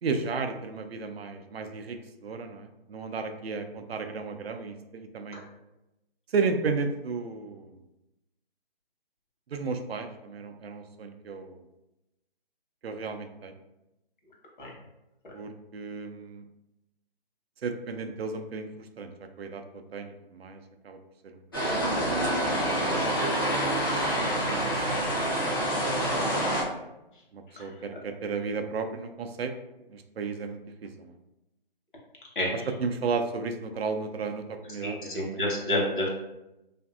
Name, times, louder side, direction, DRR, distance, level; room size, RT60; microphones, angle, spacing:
voice 1, 0.0-5.4 6.3-7.8 9.5-11.6 12.8-13.5 15.3-16.4 17.6-19.1 19.4-21.0 21.2-22.0 23.8-25.2 27.3-29.5 29.9-31.1 32.5-35.4, right 4 dB, 80° right, 6 dB, 0.5 m, -34 dB
sound 1, 21.5-26.6, right 1 dB, 25° left, 0.5 m, -27 dB
voice 2, 22.9-23.2 26.1-26.4 27.6-27.7 32.4-32.5 34.8-36.1, left 1 dB, 55° left, -3 dB, 1.0 m, -30 dB
2.6 x 2.5 x 2.3 m, 0.93 s
figure-of-eight pair, 160°, 30 cm